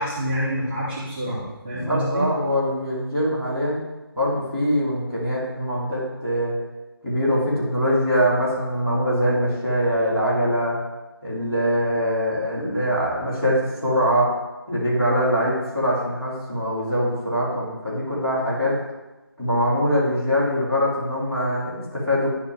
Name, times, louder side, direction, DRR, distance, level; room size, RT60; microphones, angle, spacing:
voice 1, 0.0-2.2, equal, 25° right, -9 dB, 2.0 m, -27 dB
voice 2, 1.7-3.8 4.1-6.6 7.0-10.8 11.2-14.4 14.7-18.8 19.4-22.3, equal, ahead, -19 dB, 2.2 m, -23 dB
11.0 x 4.5 x 3.7 m, 1.1 s
figure-of-eight pair, 170°, 13 cm